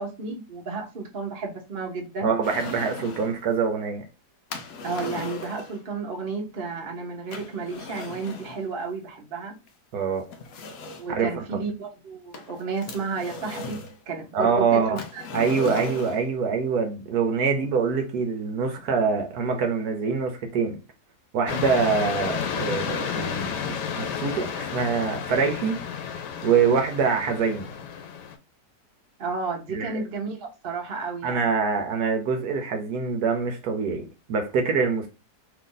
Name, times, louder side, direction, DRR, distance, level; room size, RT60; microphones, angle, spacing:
voice 1, 0.0-2.3 4.8-9.5 11.0-13.8 14.1-15.2 29.2-31.5, right 4 dB, 40° right, 0.9 m, -32 dB
voice 2, 2.2-4.0 9.9-10.3 11.1-11.6 14.3-15.0 15.3-20.8 21.3-25.7 26.4-27.7 29.7-30.0 31.2-35.1, right 5 dB, 70° right, 1.2 m, -25 dB
sound 1, 2.4-3.4 4.5-5.8 7.3-8.6 9.7-9.8 10.3-11.2 12.3-14.0 15.0-16.3, left 3 dB, 70° left, 1.0 m, -37 dB
sound 2, 21.5-28.4, left 7 dB, 90° left, 1.2 m, -31 dB
3.1 x 2.5 x 3.8 m
omnidirectional pair, 1.8 m